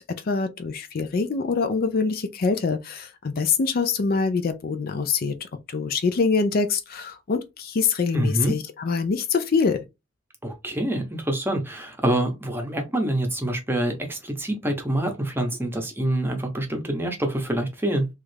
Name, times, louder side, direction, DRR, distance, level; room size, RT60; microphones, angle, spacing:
voice 1, 0.0-9.8, left 4 dB, 50° left, 0.4 m, -25 dB
voice 2, 8.1-8.5 10.4-18.1, right 1 dB, 10° right, 0.8 m, -26 dB
3.2 x 2.4 x 3.2 m
head